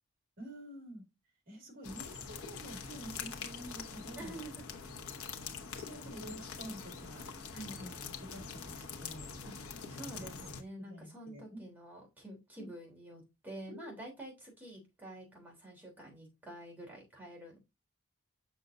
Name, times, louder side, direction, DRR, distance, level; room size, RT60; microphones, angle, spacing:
voice 1, 0.4-1.1 1.5-4.4 5.7-7.3 7.8-9.3 10.1-10.3 10.8-11.6 12.6-12.7 13.7-13.9, equal, 45° right, 2.4 m, -48 dB
sound 1, 1.8-10.6, left 5 dB, 85° left, 1.1 m, -44 dB
voice 2, 4.2-4.6 7.5-7.8 9.4-9.5 9.9-17.6, right 1 dB, 10° right, 3.3 m, -48 dB
6.6 x 6.5 x 2.6 m
head